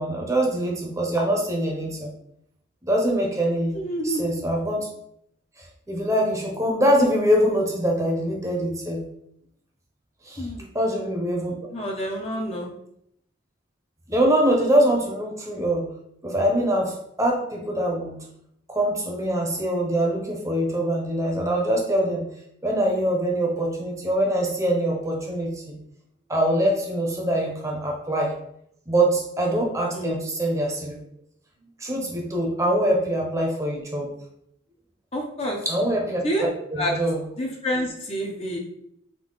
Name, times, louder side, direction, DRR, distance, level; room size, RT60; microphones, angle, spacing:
voice 1, 0.0-2.1 2.8-3.8 4.0-4.9 5.6-9.0 10.2-10.5 10.7-11.5 14.1-15.9 16.2-18.2 18.7-22.3 22.6-25.7 26.3-28.3 28.9-31.0 31.8-34.1 35.7-36.2 36.7-37.2, right 1 dB, 15° right, 0 dB, 0.8 m, -23 dB
voice 2, 3.7-4.2 10.4-10.8 11.7-12.7 29.9-30.2 35.1-35.7 36.2-36.5 36.8-36.9 37.4-38.6, equal, 30° left, 0 dB, 0.7 m, -28 dB
3.7 x 3.4 x 3.9 m, 0.73 s
head